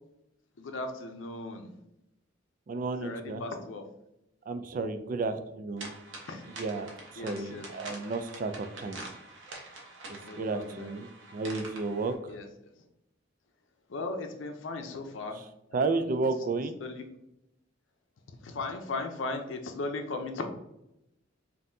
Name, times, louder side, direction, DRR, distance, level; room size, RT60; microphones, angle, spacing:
voice 1, 0.6-1.8 3.0-3.8 6.3-6.4 7.2-7.7 10.2-10.9 12.3-12.5 13.9-15.4 15.7-15.8 16.8-17.0 18.3-20.5, left 3 dB, 75° left, 5 dB, 0.6 m, -37 dB
voice 2, 2.7-3.4 4.5-5.9 6.6-9.0 10.1-12.4 15.3-15.4 15.7-16.8, right 3 dB, 45° right, 9 dB, 0.3 m, -32 dB
sound 1, 5.8-12.1, right 2 dB, 75° right, 1.0 m, -45 dB
5.4 x 2.7 x 2.7 m, 0.87 s
head